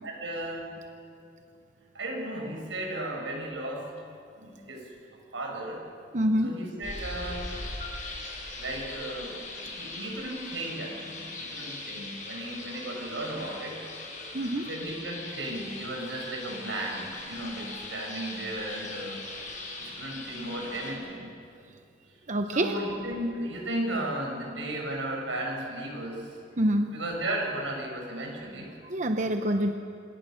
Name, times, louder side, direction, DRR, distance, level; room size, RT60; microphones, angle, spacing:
voice 1, 0.0-0.7 1.9-3.9 4.4-4.9 5.3-5.8 6.4-7.6 8.6-13.8 14.1-19.2 19.8-21.3 22.5-26.3 26.9-28.7, right 1 dB, 90° right, 1 dB, 6.4 m, -35 dB
voice 2, 6.1-6.6 14.3-14.7 22.3-22.7 26.6-26.9 28.8-29.7, right 1 dB, 40° right, 6 dB, 0.9 m, -26 dB
sound 1, 6.8-20.9, left 2 dB, 40° left, 5.7 m, -40 dB
26.5 x 21.0 x 6.5 m, 2.5 s
head